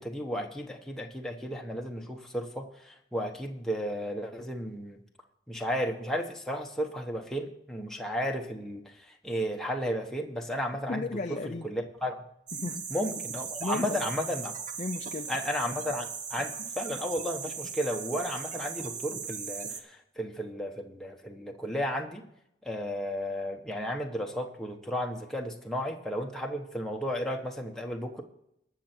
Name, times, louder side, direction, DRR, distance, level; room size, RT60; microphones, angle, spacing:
voice 1, 0.0-5.0 5.5-11.1 11.6-12.2 12.9-14.5 15.3-22.2 22.6-28.2, equal, ahead, 1 dB, 1.0 m, -33 dB
voice 2, 10.9-11.7 12.5-12.8 13.6-14.3 14.8-15.3, left 3 dB, 40° left, 6 dB, 0.5 m, -35 dB
sound 1, 12.5-19.8, right 6 dB, 40° right, 1.0 m, -38 dB
20.0 x 6.7 x 4.4 m, 0.76 s
head